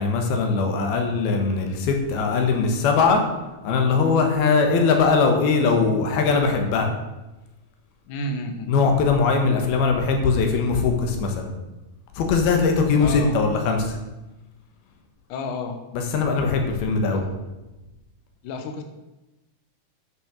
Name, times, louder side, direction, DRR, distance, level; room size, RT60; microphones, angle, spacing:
voice 1, 0.0-3.2 3.6-6.9 8.7-11.5 12.2-13.9 15.9-17.2, left 4 dB, 85° left, 3 dB, 3.3 m, -21 dB
voice 2, 8.1-8.7 13.0-13.4 15.3-15.8 17.0-17.2 18.4-18.8, left 2 dB, 65° left, 5 dB, 2.3 m, -31 dB
10.5 x 6.7 x 6.5 m, 1.0 s
omnidirectional pair, 4.3 m